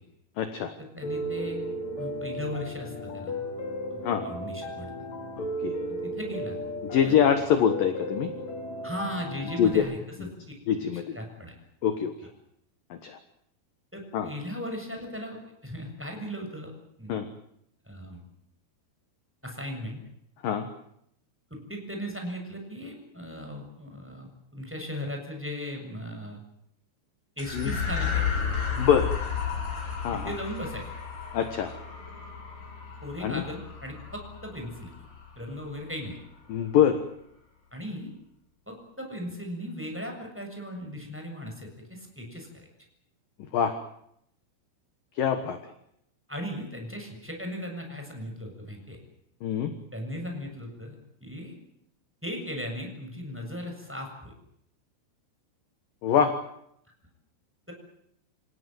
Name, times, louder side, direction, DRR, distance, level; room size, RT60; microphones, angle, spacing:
voice 1, 0.4-0.7 4.0-4.2 5.4-5.8 6.9-8.3 9.6-9.8 10.7-11.2 11.8-12.1 12.9-13.2 14.1-14.3 17.1-17.3 20.4-20.7 27.5-27.7 28.8-29.1 30.0-30.3 31.3-31.7 33.2-33.4 36.5-37.0 43.5-43.8 45.2-45.7 49.4-49.7 56.0-56.4, left 8 dB, 65° left, 8 dB, 2.3 m, -24 dB
voice 2, 0.9-1.6 2.0-3.4 3.9-4.9 6.2-6.6 7.0-7.1 8.8-10.0 10.4-10.5 11.1-11.5 13.9-16.7 17.0-17.2 17.9-18.2 19.4-20.0 21.5-26.4 27.4-28.2 28.7-28.9 30.1-30.9 33.0-34.9 35.3-36.2 37.7-38.1 38.7-42.7 46.3-49.0 49.9-51.5 52.2-54.3, equal, ahead, 3 dB, 6.6 m, -37 dB
Piano, 1.0-9.7, equal, 45° left, 2.9 m, -35 dB
sound 1, 27.4-36.0, left 6 dB, 90° left, 8.6 m, -33 dB
28.5 x 18.0 x 9.2 m, 0.75 s
omnidirectional pair, 5.9 m